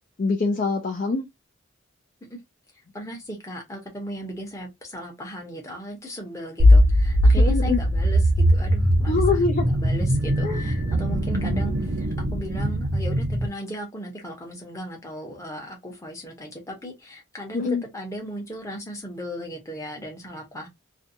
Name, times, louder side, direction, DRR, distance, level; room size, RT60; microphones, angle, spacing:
voice 1, 0.2-1.3 7.5-7.8 9.1-9.6 10.4-10.6 17.5-17.8, left 4 dB, 40° left, 0.4 m, -24 dB
voice 2, 2.9-20.7, equal, 15° left, 0.8 m, -36 dB
sound 1, 6.6-13.5, equal, 85° right, 0.7 m, -20 dB
2.6 x 2.2 x 2.6 m
head